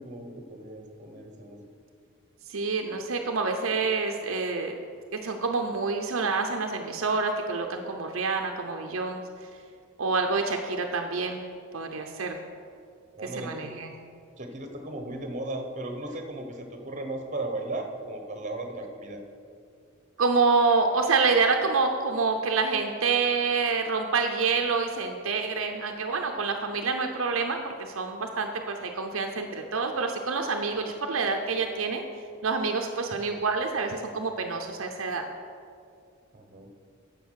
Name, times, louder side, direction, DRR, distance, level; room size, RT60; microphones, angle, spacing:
voice 1, 0.0-1.6 13.2-13.6 14.4-19.2 36.3-36.7, right 2 dB, 35° right, 4 dB, 1.1 m, -36 dB
voice 2, 2.5-4.7 5.1-9.2 10.0-11.4 11.7-12.4 13.4-13.9 20.2-32.0 32.4-35.2, right 4 dB, 70° right, 4 dB, 0.7 m, -27 dB
9.4 x 6.9 x 6.4 m, 2.3 s
head